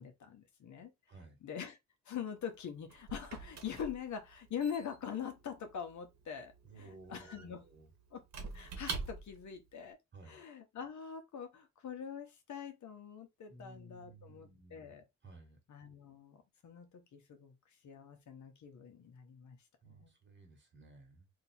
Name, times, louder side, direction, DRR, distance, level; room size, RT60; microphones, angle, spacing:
voice 1, 0.0-0.9 1.4-1.8 2.0-7.6 8.1-8.2 8.5-10.0 10.3-15.0 15.7-17.5 17.8-19.6 19.8-20.1, left 7 dB, 75° left, 1.1 m, -44 dB
voice 2, 1.1-1.4 6.6-7.9 10.1-10.4 13.5-14.9 15.2-15.6 19.8-21.3, right 2 dB, 40° right, 1.5 m, -56 dB
Squeak / Wood, 2.4-9.5, right 4 dB, 65° right, 1.1 m, -46 dB
2.8 x 2.8 x 4.2 m
cardioid pair, 115°, 29 cm